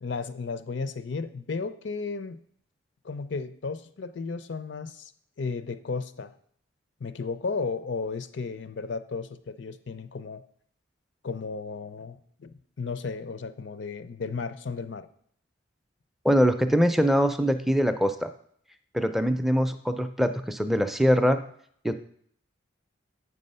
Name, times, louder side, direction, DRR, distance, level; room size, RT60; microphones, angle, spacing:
voice 1, 0.0-2.4 3.0-5.1 5.4-6.3 7.0-10.4 11.2-12.5 12.8-15.1, left 4 dB, 65° left, 12 dB, 0.5 m, -34 dB
voice 2, 16.2-18.3 18.9-21.4 21.8-22.0, equal, ahead, 8 dB, 0.4 m, -23 dB
8.2 x 5.5 x 5.4 m, 0.64 s
head